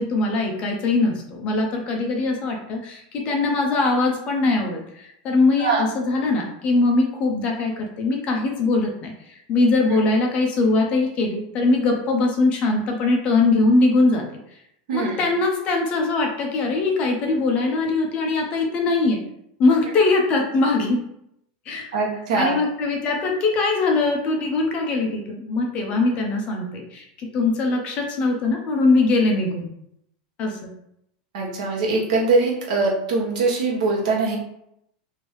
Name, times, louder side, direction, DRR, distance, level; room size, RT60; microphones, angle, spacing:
voice 1, 0.0-14.2 14.9-19.2 19.6-21.0 21.7-21.9 22.3-29.7 30.4-30.7, left 3 dB, 25° left, 1 dB, 0.5 m, -21 dB
voice 2, 14.9-15.3 21.9-22.6 31.3-34.4, right 3 dB, 65° right, -2 dB, 1.1 m, -22 dB
3.1 x 2.6 x 3.2 m, 0.76 s
supercardioid pair, 170°, 4 cm